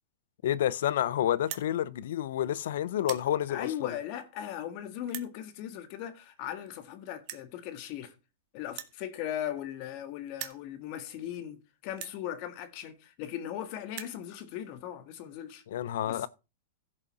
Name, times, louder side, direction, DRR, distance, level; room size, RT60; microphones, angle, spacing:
voice 1, 0.4-3.9 15.7-16.3, left 11 dB, 70° left, 0.6 m, -29 dB
sound 1, 1.4-1.7 2.4-2.6 2.9-3.3 4.0-4.1 5.0-5.3 6.4-6.5 6.7-6.8 7.2-7.5 8.7-10.0 10.3-10.6 11.3-11.4 11.9-12.2 13.1-13.2 13.4-13.5 13.8-14.2, right 14 dB, 45° right, 1.3 m, -42 dB
voice 2, 3.5-8.1 8.5-15.6 16.0-16.3, left 11 dB, 45° left, 1.6 m, -38 dB
15.5 x 5.5 x 4.1 m
hypercardioid pair, 140°, 0 cm